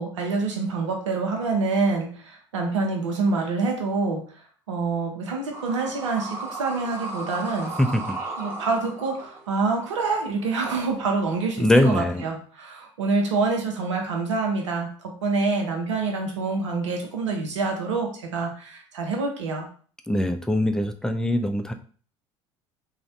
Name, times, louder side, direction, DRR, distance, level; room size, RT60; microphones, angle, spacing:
voice 1, 0.0-4.2 4.7-7.8 8.4-19.7, right 3 dB, 80° right, 2 dB, 0.5 m, -26 dB
sound 1, 5.5-11.8, right 2 dB, 15° right, 0.8 m, -36 dB
voice 2, 7.8-8.2 11.6-12.3 20.1-21.7, left 1 dB, 5° left, 6 dB, 0.3 m, -22 dB
3.0 x 2.0 x 2.7 m, 0.43 s
figure-of-eight pair, 60°, 15 cm